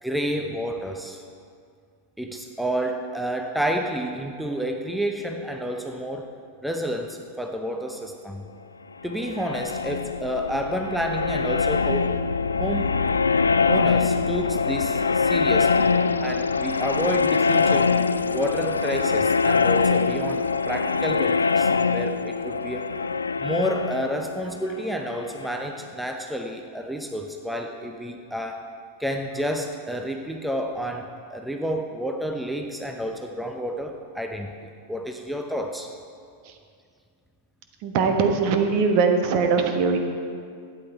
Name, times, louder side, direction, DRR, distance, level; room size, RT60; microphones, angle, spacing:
voice 1, 0.0-1.2 2.2-6.3 6.6-8.4 9.0-12.1 12.6-13.0 13.7-15.9 16.2-18.0 18.3-22.9 23.4-28.7 29.0-34.5 34.9-35.9, equal, ahead, 3 dB, 0.7 m, -30 dB
sound 1, 9.0-25.7, left 4 dB, 75° left, 0.3 m, -23 dB
voice 2, 37.8-40.0, right 5 dB, 45° right, 5 dB, 1.1 m, -21 dB
12.0 x 9.0 x 4.5 m, 2.3 s
figure-of-eight pair, 90°, 0 cm